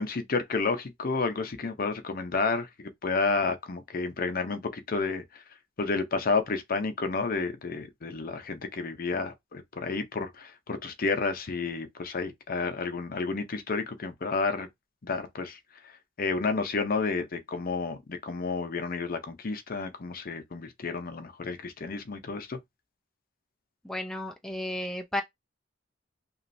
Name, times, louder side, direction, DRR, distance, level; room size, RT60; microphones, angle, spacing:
voice 1, 0.0-5.4 5.8-14.7 15.0-15.6 16.2-22.6, left 4 dB, 50° left, 0.6 m, -31 dB
voice 2, 23.8-25.2, left 1 dB, 5° left, 0.3 m, -33 dB
3.0 x 2.4 x 2.6 m
head